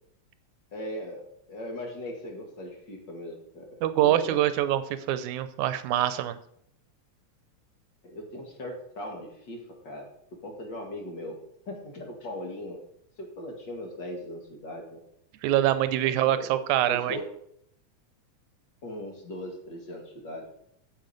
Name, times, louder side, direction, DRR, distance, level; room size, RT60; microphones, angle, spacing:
voice 1, 0.7-3.7 4.0-4.4 8.0-11.4 11.7-12.8 13.2-15.0 16.0-16.6 16.9-17.3 18.8-20.5, left 1 dB, 40° left, 1 dB, 2.2 m, -39 dB
voice 2, 3.8-6.4 15.4-17.2, right 12 dB, 85° right, 12 dB, 2.1 m, -25 dB
9.1 x 7.9 x 5.2 m, 0.72 s
omnidirectional pair, 3.4 m